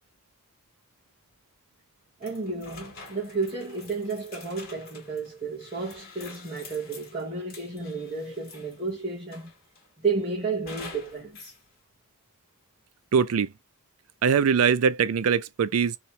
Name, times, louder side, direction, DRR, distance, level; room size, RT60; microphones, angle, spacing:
sound 1, 2.2-8.9 9.3-9.9 10.7-11.6, left 3 dB, 45° left, 1.5 m, -47 dB
voice 1, 2.2-9.5 10.0-11.5, right 4 dB, 25° right, 1.0 m, -32 dB
voice 2, 13.1-13.5 14.2-16.0, right 6 dB, 85° right, 0.4 m, -22 dB
3.0 x 2.9 x 2.7 m
head